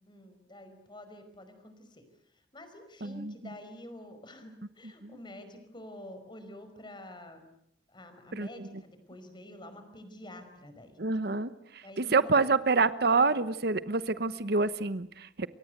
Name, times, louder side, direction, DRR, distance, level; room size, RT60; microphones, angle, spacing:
voice 1, 0.1-2.0 2.5-7.4 7.9-11.0 11.8-12.5, left 1 dB, 25° left, 9 dB, 5.1 m, -48 dB
voice 2, 3.0-3.3 5.0-5.2 8.3-8.7 11.0-15.5, right 4 dB, 60° right, 14 dB, 1.0 m, -27 dB
28.5 x 24.0 x 8.0 m, 0.72 s
head